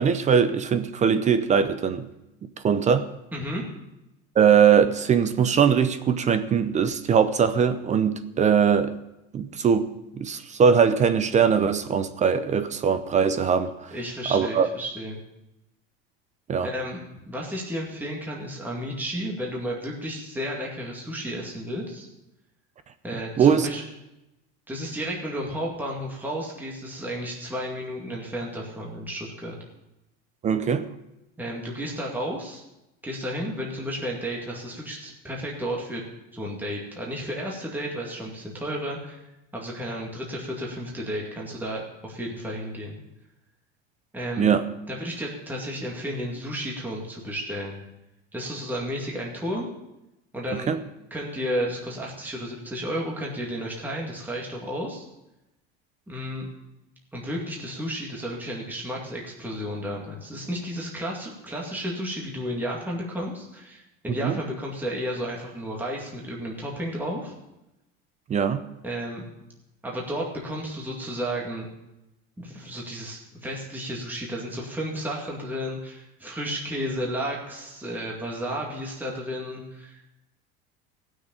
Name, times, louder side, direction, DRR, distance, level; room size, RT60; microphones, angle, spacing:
voice 1, 0.0-2.1 2.6-3.1 4.4-8.9 9.3-13.9 14.3-14.7 16.5-16.7 23.4-23.7 30.4-30.8 44.4-44.6 50.5-50.8 64.1-64.4 68.3-68.6, right 7 dB, 25° right, 11 dB, 0.6 m, -21 dB
voice 2, 3.3-3.6 13.9-15.2 16.6-17.0 17.3-22.1 23.0-23.8 24.7-29.6 31.4-32.6 33.0-36.0 36.3-39.3 39.5-43.0 44.1-44.5 44.9-47.8 48.3-49.7 50.3-50.7 51.1-55.0 56.1-56.5 57.1-67.3 68.8-69.3 69.8-71.7 72.4-80.1, equal, 5° right, -2 dB, 2.2 m, -32 dB
15.5 x 6.5 x 8.8 m, 0.92 s
cardioid pair, 150°, 30 cm